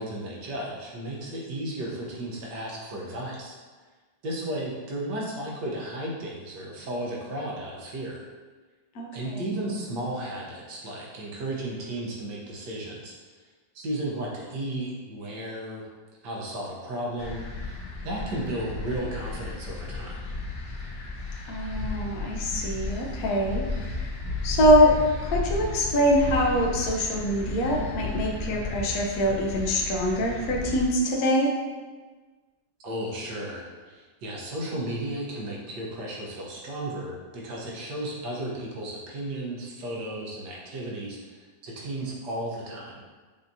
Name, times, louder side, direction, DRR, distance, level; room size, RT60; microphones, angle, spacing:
voice 1, 0.0-3.5 4.2-8.3 9.1-13.5 13.7-15.9 16.2-20.2 32.8-43.0, right 1 dB, 70° right, -3 dB, 1.4 m, -34 dB
voice 2, 8.9-9.5 21.5-23.6 24.4-31.5, equal, 65° left, -1 dB, 1.1 m, -24 dB
sound 1, 17.2-30.9, left 3 dB, 80° left, 1.5 m, -34 dB
7.0 x 2.8 x 2.6 m, 1.4 s
omnidirectional pair, 2.0 m